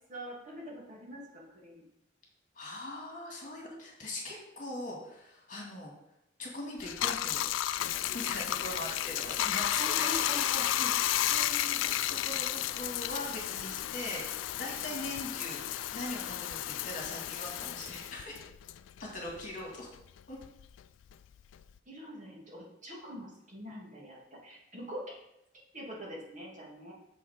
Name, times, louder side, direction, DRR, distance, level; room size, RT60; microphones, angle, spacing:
voice 1, 0.1-1.8 9.2-9.3 9.8-10.7 21.9-24.2 24.4-25.2 25.7-26.9, equal, 40° right, -4 dB, 2.3 m, -43 dB
voice 2, 2.6-5.9 6.4-7.5 8.0-10.5 10.8-18.4 19.1-19.9 20.3-20.4, left 1 dB, 45° left, -2 dB, 2.2 m, -41 dB
Bathtub (filling or washing), 6.8-19.6 19.9-21.8, left 13 dB, 85° left, 0.3 m, -33 dB
7.1 x 5.6 x 5.1 m, 0.83 s
head